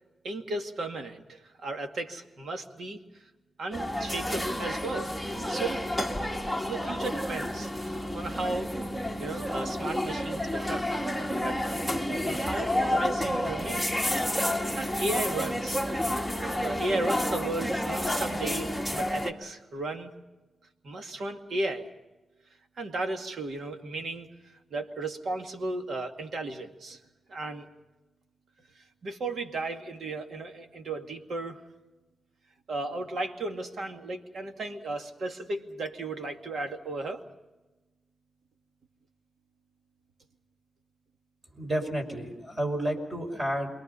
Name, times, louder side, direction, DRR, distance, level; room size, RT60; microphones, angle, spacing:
voice 1, 0.2-3.0 3.6-5.1 5.5-5.8 6.6-8.7 9.2-10.9 11.4-11.6 12.2-13.9 14.8-15.8 16.6-20.1 20.8-21.9 22.8-24.3 24.7-27.0 27.3-27.7 29.0-31.6 32.7-37.2, right 2 dB, 65° right, 4 dB, 2.2 m, -35 dB
sound 1, 3.7-19.3, equal, 10° right, 2.0 m, -30 dB
voice 2, 41.6-43.7, right 1 dB, 30° right, 3 dB, 5.6 m, -31 dB
28.5 x 23.0 x 5.6 m, 1.1 s
cardioid pair, 105°, 0 cm